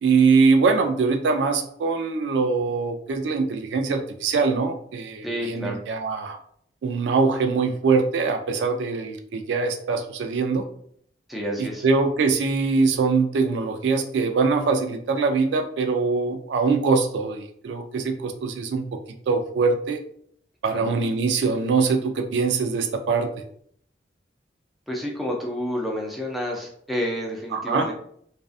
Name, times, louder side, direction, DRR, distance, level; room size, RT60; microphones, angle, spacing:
voice 1, 0.0-6.4 6.8-10.6 11.6-18.8 19.3-20.0 20.6-23.3 27.5-27.9, right 4 dB, 75° right, 5 dB, 0.3 m, -23 dB
voice 2, 5.2-5.8 11.3-11.8 20.7-20.9 24.9-27.9, equal, ahead, -2 dB, 0.4 m, -29 dB
2.5 x 2.3 x 2.4 m, 0.64 s
head